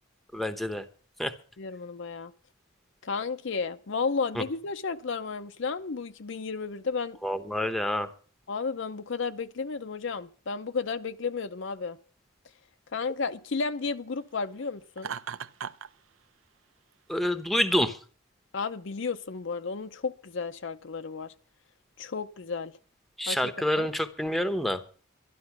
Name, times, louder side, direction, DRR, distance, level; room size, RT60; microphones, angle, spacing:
voice 1, 0.3-0.8 1.2-1.3 4.4-4.5 7.2-8.1 17.1-18.0 23.2-24.8, left 1 dB, ahead, 0.8 m, -27 dB
voice 2, 1.6-2.3 3.0-7.2 8.5-12.0 12.9-15.1 18.5-21.3 22.0-22.7 23.3-23.9, left 4 dB, 55° left, 0.6 m, -33 dB
Laughter, 15.0-15.9, right 7 dB, 65° right, 0.6 m, -36 dB
12.0 x 12.0 x 5.9 m
head